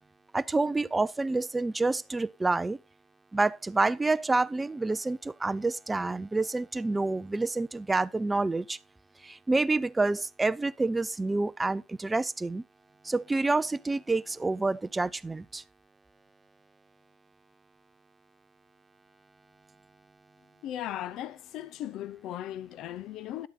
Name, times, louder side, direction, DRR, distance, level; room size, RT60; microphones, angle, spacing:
voice 1, 0.3-2.8 3.3-8.8 9.2-12.6 13.0-15.6, right 3 dB, 10° right, 0.5 m, -28 dB
voice 2, 20.6-23.5, left 12 dB, 50° left, 0.6 m, -37 dB
11.5 x 8.0 x 3.7 m
supercardioid pair, 110°, 0 cm